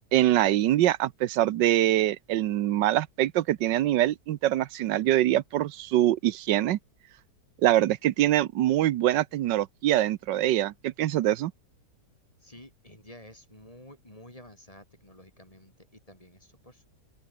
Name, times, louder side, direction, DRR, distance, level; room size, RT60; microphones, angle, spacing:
voice 1, 0.1-6.8 7.6-11.5, right 13 dB, 85° right, 1.4 m, -24 dB
voice 2, 12.4-16.9, left 1 dB, 20° left, 6.0 m, -51 dB
open air
omnidirectional pair, 1.9 m